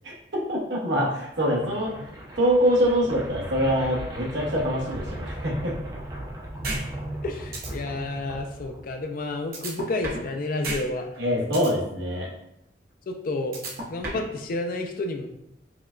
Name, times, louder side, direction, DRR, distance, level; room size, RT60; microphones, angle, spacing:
voice 1, 0.5-1.9 2.4-5.8 11.2-12.3, equal, 90° right, -3 dB, 1.0 m, -24 dB
sound 1, 1.3-9.2, right 1 dB, 20° right, 0.5 m, -37 dB
voice 2, 6.6-6.9 7.2-11.1 13.1-13.6 13.9-15.3, left 2 dB, 50° left, 4 dB, 0.4 m, -30 dB
sound 2, 6.6-6.8 7.2-7.3 7.5-7.7 9.5-10.3 10.6-10.8 11.1-11.7 13.5-14.3, right 2 dB, 55° right, 0.8 m, -32 dB
4.8 x 2.2 x 2.4 m, 0.80 s
head